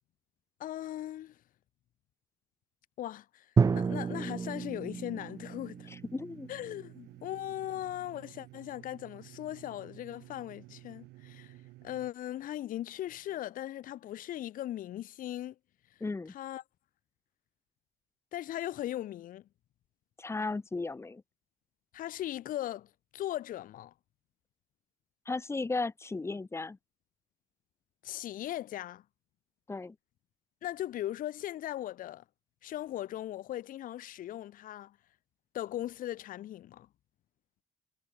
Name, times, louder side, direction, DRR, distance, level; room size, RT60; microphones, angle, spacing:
voice 1, 0.6-1.4 3.0-5.9 6.5-11.5 11.8-15.6 16.3-16.6 18.3-19.5 21.9-23.9 28.0-29.0 30.6-32.2 32.6-35.0 35.5-36.9, left 13 dB, 55° left, 0.6 m, -39 dB
Drum, 3.6-7.3, right 5 dB, 20° right, 0.4 m, -31 dB
sound 1, 4.5-12.1, right 19 dB, 90° right, 5.4 m, -53 dB
voice 2, 6.1-6.5 16.0-16.3 20.2-21.2 25.3-26.8 29.7-29.9, left 3 dB, 15° left, 0.9 m, -35 dB
cardioid pair, 110°, 17 cm